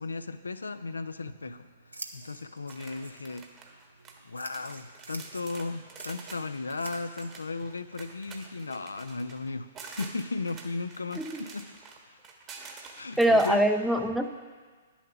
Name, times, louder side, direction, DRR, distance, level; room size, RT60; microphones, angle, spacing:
voice 1, 0.0-1.7 2.1-3.5 4.2-11.6 12.9-13.6, left 3 dB, 75° left, 11 dB, 0.4 m, -36 dB
Scissors, 1.0-9.2, right 2 dB, 85° right, 0.8 m, -49 dB
sound 1, 2.7-4.2 4.5-13.5, right 5 dB, 25° right, 1.2 m, -48 dB
voice 2, 13.2-14.3, right 1 dB, ahead, 6 dB, 0.5 m, -23 dB
10.5 x 7.1 x 5.8 m, 1.5 s
figure-of-eight pair, 115°, 0 cm